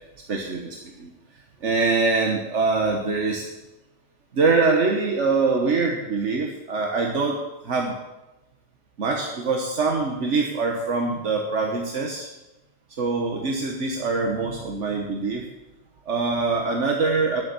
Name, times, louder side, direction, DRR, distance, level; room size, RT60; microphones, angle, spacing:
voice 1, 0.3-1.1 1.6-3.4 4.3-7.9 9.0-12.3 13.0-15.4 16.1-17.4, right 4 dB, 80° right, 1 dB, 1.6 m, -24 dB
12.0 x 10.5 x 7.0 m, 1.0 s
omnidirectional pair, 1.2 m